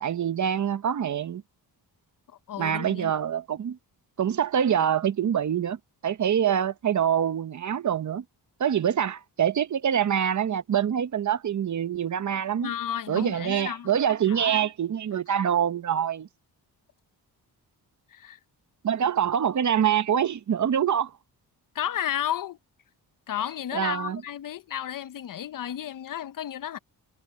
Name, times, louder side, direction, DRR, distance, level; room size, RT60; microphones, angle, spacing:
voice 1, 0.0-1.4 2.6-3.8 4.2-5.8 6.0-8.2 8.6-12.7 13.1-16.3 18.8-21.1 23.7-24.2, right 9 dB, 45° right, 0.7 m, -25 dB
voice 2, 2.3-3.1 12.6-13.9 14.3-14.7 15.1-15.2 18.1-18.4 21.7-22.6 23.3-26.8, left 10 dB, 55° left, 0.6 m, -33 dB
wide cardioid pair, 165°, 40 cm